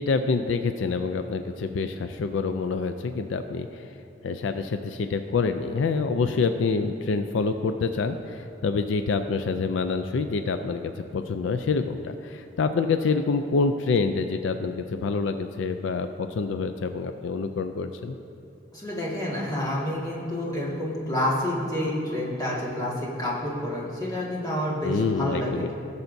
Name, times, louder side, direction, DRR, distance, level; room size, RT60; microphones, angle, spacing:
voice 1, 0.0-3.9 4.2-18.2 24.8-25.7, left 4 dB, 70° left, 8 dB, 0.4 m, -27 dB
voice 2, 18.7-25.6, left 1 dB, 20° left, -6 dB, 1.8 m, -28 dB
17.5 x 6.9 x 2.7 m, 2.9 s
head